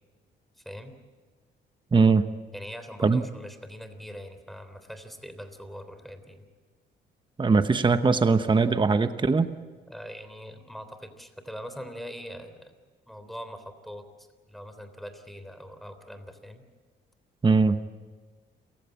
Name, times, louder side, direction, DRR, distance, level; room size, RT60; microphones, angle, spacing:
voice 1, 1.9-2.3 3.0-3.2 7.4-9.5 17.4-17.8, right 4 dB, 25° right, 10 dB, 1.0 m, -21 dB
voice 2, 2.5-6.5 9.9-12.7 13.1-16.6, equal, ahead, 9 dB, 3.4 m, -42 dB
28.5 x 16.0 x 8.5 m, 1.5 s
cardioid pair, 90°, 20 cm